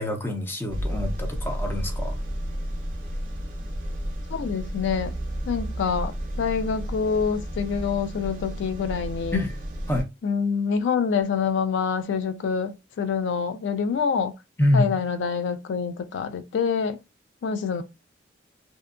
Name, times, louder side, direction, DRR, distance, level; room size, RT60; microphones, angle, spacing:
voice 1, 0.0-2.2 9.3-9.6 9.9-10.1 14.6-14.9, left 1 dB, 10° left, 0.5 m, -25 dB
sound 1, 0.7-10.0, equal, 45° right, 0.6 m, -32 dB
voice 2, 4.3-5.1 5.5-9.4 10.2-14.3 14.7-17.0 17.4-17.8, left 6 dB, 85° left, 0.3 m, -26 dB
2.7 x 2.2 x 2.4 m
head